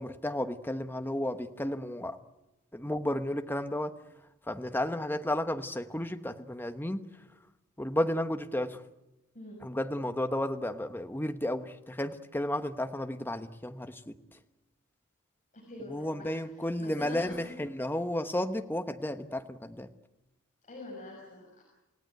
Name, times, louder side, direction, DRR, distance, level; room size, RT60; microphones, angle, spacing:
voice 1, 0.0-2.2 2.7-3.9 4.4-7.1 7.8-8.8 9.6-14.4 15.9-19.9, left 1 dB, 10° left, 8 dB, 1.1 m, -33 dB
voice 2, 15.5-17.6 20.6-21.6, left 2 dB, 35° left, -2 dB, 6.0 m, -45 dB
29.0 x 17.0 x 9.3 m, 0.99 s
head